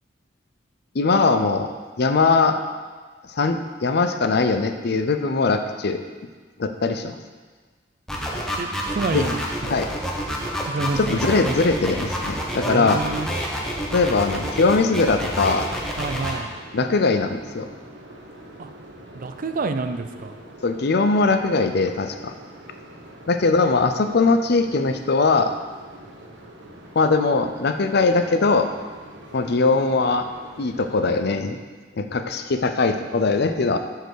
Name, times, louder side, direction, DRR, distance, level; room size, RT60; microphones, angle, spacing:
voice 1, 0.9-1.7 2.0-2.6 3.3-6.0 6.6-7.2 9.1-9.2 9.7-9.9 11.0-13.0 13.9-15.7 16.7-17.7 20.6-22.3 23.3-25.5 27.0-28.7 29.3-30.3 30.6-31.6 32.0-33.8, left 3 dB, 60° left, 8 dB, 0.6 m, -21 dB
sound 1, 8.1-16.3, equal, 5° left, 1.1 m, -28 dB
voice 2, 8.6-9.4 9.7-9.8 10.7-11.7 12.6-13.3 16.0-16.5 18.6-18.7 19.1-20.4, right 3 dB, 45° right, 8 dB, 0.5 m, -28 dB
sound 2, 13.1-31.3, right 1 dB, 65° right, 1.2 m, -44 dB
7.9 x 4.7 x 6.4 m, 1.4 s
head